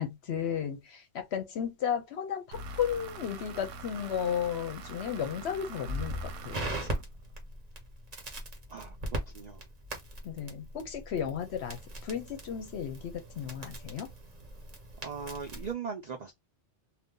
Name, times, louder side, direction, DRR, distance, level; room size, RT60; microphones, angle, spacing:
voice 1, 0.0-6.2 6.4-6.9 10.2-14.1, left 8 dB, 65° left, 0.8 m, -34 dB
sound 1, 2.5-7.4, right 2 dB, 80° right, 1.0 m, -44 dB
Crackle, 5.9-15.7, right 1 dB, 35° right, 1.0 m, -40 dB
voice 2, 8.7-9.6 15.0-16.3, right 6 dB, 55° right, 0.4 m, -39 dB
2.6 x 2.2 x 3.5 m
omnidirectional pair, 1.3 m